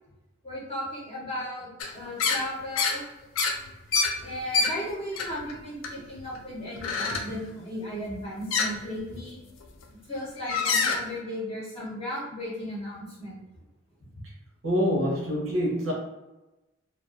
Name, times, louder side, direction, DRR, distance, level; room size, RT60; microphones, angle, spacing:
voice 1, 0.4-1.7 1.9-3.0 4.2-9.4 10.1-13.4 14.1-14.2, left 1 dB, 30° left, -7 dB, 0.7 m, -35 dB
sound 1, 1.8-1.9 2.2-2.4 2.8-3.0 3.4-4.7 5.2-5.6 5.8-6.4 6.8-7.3 8.5-8.7 9.6-9.8 10.4-11.0, left 4 dB, 90° left, 0.4 m, -26 dB
voice 2, 14.6-15.9, equal, 85° right, -3 dB, 0.7 m, -25 dB
2.3 x 2.3 x 2.3 m, 1.0 s
head